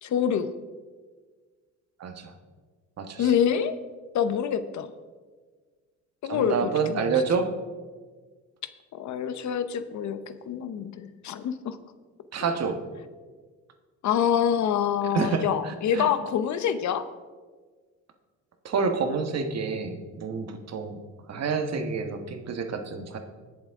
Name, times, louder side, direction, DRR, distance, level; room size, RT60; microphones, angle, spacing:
voice 1, 0.0-0.5 3.2-3.8 4.1-4.9 6.2-7.1 8.9-11.8 14.0-17.0, left 8 dB, 70° left, 12 dB, 0.8 m, -26 dB
voice 2, 2.0-2.3 3.0-3.3 6.3-7.5 12.3-12.8 15.1-16.1 18.6-21.0 21.3-23.2, right 5 dB, 60° right, 6 dB, 1.4 m, -28 dB
20.0 x 7.3 x 3.6 m, 1.4 s
cardioid pair, 90°, 30 cm